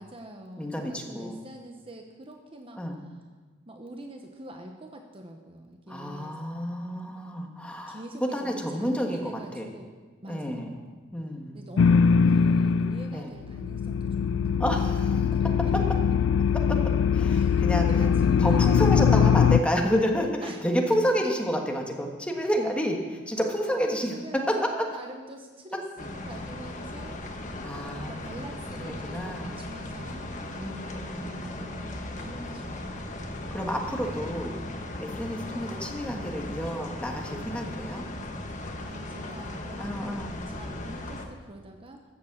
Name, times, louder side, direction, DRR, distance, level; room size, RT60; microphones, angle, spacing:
voice 1, 0.0-3.2 3.7-6.4 7.9-9.9 10.2-11.0 11.5-14.6 15.0-15.5 16.1-16.2 17.3-19.5 20.4-20.6 23.4-27.2 27.9-30.9 31.3-33.7 38.8-42.0, right 1 dB, 30° right, 3 dB, 0.9 m, -44 dB
voice 2, 0.6-1.4 2.8-3.0 5.9-8.0 8.3-9.7 10.3-10.7 11.1-11.6 13.1-13.3 14.6-15.2 15.4-15.8 16.7-17.9 18.4-24.6 27.6-28.3 28.8-29.6 30.6-31.8 33.5-34.6 35.0-38.0 39.8-40.4, equal, 5° left, 1 dB, 1.4 m, -30 dB
sound 1, 11.8-13.2 13.4-19.6, left 6 dB, 80° left, 0.3 m, -22 dB
sound 2, 26.0-41.3, left 1 dB, 40° left, 1.3 m, -37 dB
sound 3, 32.9-38.7, right 1 dB, 65° right, 2.5 m, -49 dB
14.0 x 7.5 x 7.3 m, 1.4 s
head